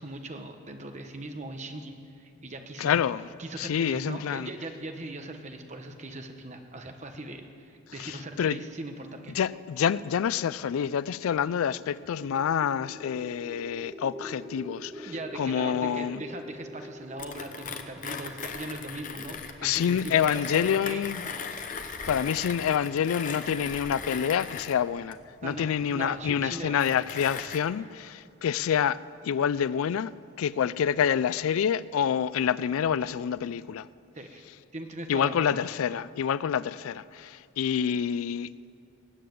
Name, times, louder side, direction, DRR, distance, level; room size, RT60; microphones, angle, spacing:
voice 1, 0.0-3.0 3.4-9.3 15.1-21.0 25.4-26.8 34.1-34.4 34.7-35.6, right 2 dB, 35° right, 1.0 m, -40 dB
voice 2, 2.8-3.3 3.6-4.5 8.0-8.6 9.3-16.2 19.6-21.3 22.1-29.0 29.2-33.9 35.1-38.5, left 8 dB, 85° left, 0.3 m, -27 dB
sound 1, 11.8-19.8, equal, 10° right, 0.8 m, -45 dB
Mechanisms, 17.2-27.6, left 5 dB, 40° left, 0.8 m, -39 dB
19.0 x 7.6 x 7.8 m
head